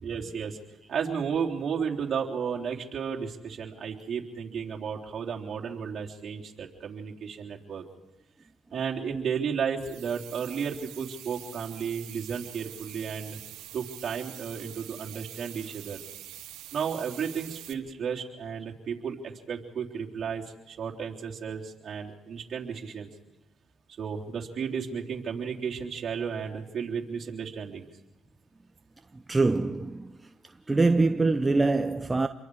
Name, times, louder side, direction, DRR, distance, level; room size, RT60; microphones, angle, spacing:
voice 1, 0.0-0.6 0.9-7.8 8.7-13.4 13.7-16.0 16.7-23.1 24.0-27.9, right 7 dB, 55° right, 3.6 m, -33 dB
sound 1, 9.8-17.7, right 13 dB, 85° right, 1.2 m, -45 dB
voice 2, 29.1-30.2 30.7-32.3, right 3 dB, 20° right, 0.9 m, -24 dB
28.0 x 23.0 x 4.9 m
cardioid pair, 80°, 0 cm